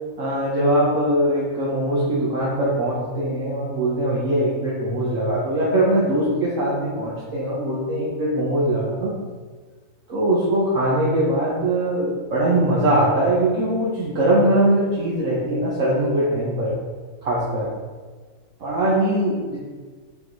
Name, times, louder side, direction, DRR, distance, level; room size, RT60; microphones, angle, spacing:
voice 1, 0.2-9.1 10.1-16.7 17.2-17.7 18.6-19.6, right 1 dB, 60° right, -7 dB, 1.5 m, -21 dB
5.7 x 4.2 x 4.6 m, 1.5 s
omnidirectional pair, 1.6 m